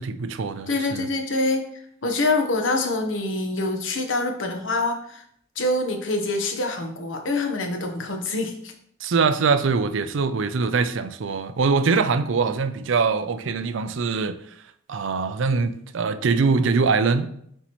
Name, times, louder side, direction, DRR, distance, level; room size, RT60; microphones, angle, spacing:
voice 1, 0.0-1.1 9.0-14.4 14.9-17.3, right 4 dB, 70° right, 0.5 m, -23 dB
voice 2, 0.7-1.7 2.0-5.2 5.6-8.7, left 2 dB, 75° left, 1.0 m, -25 dB
7.8 x 4.5 x 3.0 m
head